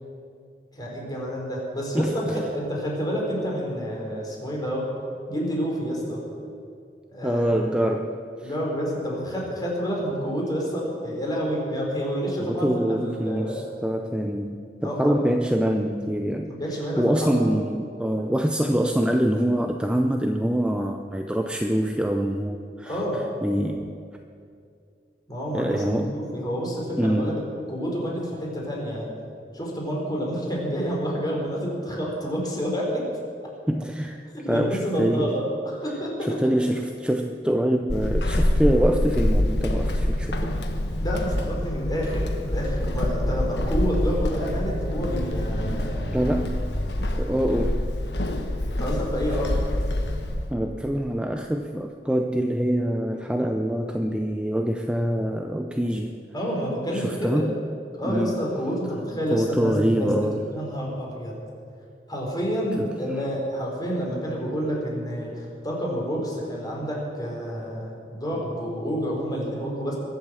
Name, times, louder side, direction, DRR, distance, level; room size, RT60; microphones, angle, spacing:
voice 1, 0.7-4.9 5.3-6.2 7.1-7.9 8.4-13.6 14.8-15.1 16.5-17.4 22.9-23.2 25.3-27.4 27.7-29.1 29.5-33.1 34.3-36.4 41.0-46.1 48.7-49.8 56.3-57.5 57.9-61.4 62.1-70.0, equal, 25° left, -2 dB, 4.1 m, -29 dB
voice 2, 7.2-8.2 12.4-16.5 17.0-23.0 23.4-23.9 25.5-26.1 27.0-27.4 33.7-34.2 34.5-35.3 36.2-40.6 46.1-46.6 47.2-47.9 50.5-56.2 56.9-57.5 58.0-58.4 59.3-60.4 62.8-62.9, equal, 5° right, 4 dB, 0.6 m, -25 dB
Walk footsteps / Squeak, 37.9-50.6, left 1 dB, 70° left, 1.3 m, -26 dB
22.5 x 7.9 x 7.4 m, 2.4 s
head